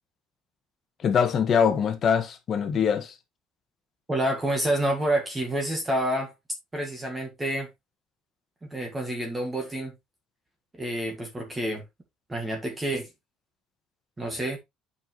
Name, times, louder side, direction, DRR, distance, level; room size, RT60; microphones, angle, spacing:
voice 1, 1.0-3.1, left 7 dB, 35° left, 1.4 m, -23 dB
voice 2, 4.1-6.3 6.7-7.7 8.7-9.9 10.7-11.8 12.3-13.1 14.2-14.6, right 1 dB, 10° right, 1.7 m, -28 dB
8.2 x 5.7 x 3.0 m
cardioid pair, 165°, 0 cm